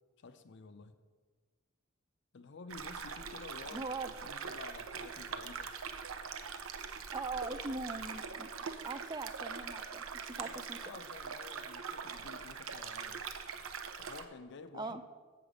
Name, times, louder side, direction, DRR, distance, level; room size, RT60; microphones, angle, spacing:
voice 1, 0.2-1.0 2.3-3.9 4.2-5.7 10.3-13.2 14.0-15.0, left 4 dB, 60° left, 10 dB, 0.5 m, -51 dB
sound 1, 2.7-14.2, right 6 dB, 80° right, 0.6 m, -43 dB
voice 2, 3.7-4.3 7.1-10.8 14.7-15.0, right 3 dB, 20° right, 11 dB, 0.4 m, -41 dB
7.2 x 6.9 x 5.0 m, 1.4 s
head